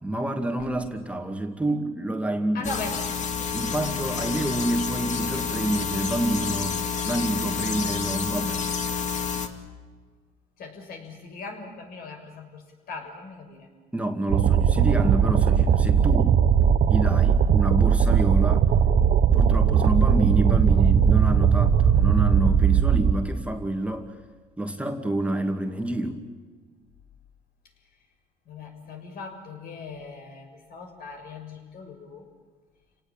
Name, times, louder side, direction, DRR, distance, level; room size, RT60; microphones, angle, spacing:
voice 1, 0.0-2.8 3.5-8.6 13.9-16.4 16.9-18.7 19.3-24.1 24.6-26.3, right 1 dB, 5° right, 4 dB, 2.3 m, -28 dB
voice 2, 2.5-3.0 10.6-13.7 28.5-32.3, left 4 dB, 60° left, 4 dB, 6.5 m, -39 dB
sound 1, 2.6-9.5, left 6 dB, 45° left, 2.4 m, -29 dB
sound 2, 14.3-23.1, right 7 dB, 55° right, 1.2 m, -19 dB
29.5 x 18.5 x 8.9 m, 1.5 s
cardioid pair, 110°, 17 cm